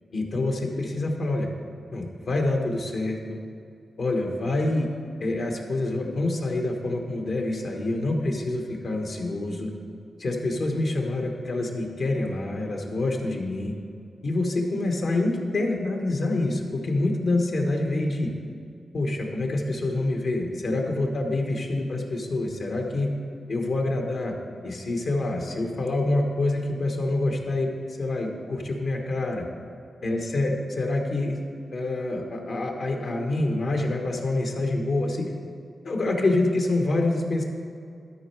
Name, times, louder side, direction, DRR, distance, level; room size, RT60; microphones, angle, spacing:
voice 1, 0.1-1.5 1.9-3.4 4.0-4.9 5.2-9.7 10.2-13.7 14.2-18.3 18.9-23.1 23.5-24.3 24.6-27.7 28.0-29.5 30.0-31.4 31.7-35.3 35.8-37.4, left 2 dB, 70° left, 2 dB, 1.3 m, -26 dB
13.0 x 4.4 x 4.6 m, 2.4 s
cardioid pair, 55°, 0 cm